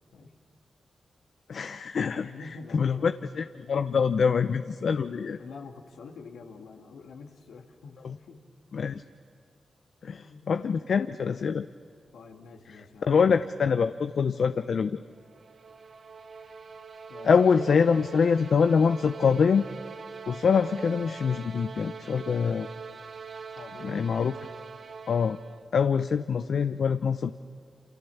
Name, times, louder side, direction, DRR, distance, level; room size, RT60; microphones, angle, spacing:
voice 1, 1.5-2.3 2.7-5.4 8.7-9.0 10.0-11.7 13.0-15.0 17.2-19.7 20.3-22.7 23.8-24.3 25.1-25.4 25.7-27.3, left 6 dB, 70° left, 10 dB, 0.7 m, -24 dB
voice 2, 2.0-3.2 5.4-8.4 10.0-10.6 12.1-13.3 17.1-17.4 23.5-24.0, left 4 dB, 85° left, 2 dB, 2.4 m, -46 dB
sound 1, 15.2-25.7, right 5 dB, 65° right, 1.2 m, -43 dB
29.0 x 28.0 x 7.2 m, 2.2 s
supercardioid pair, 45°, 0 cm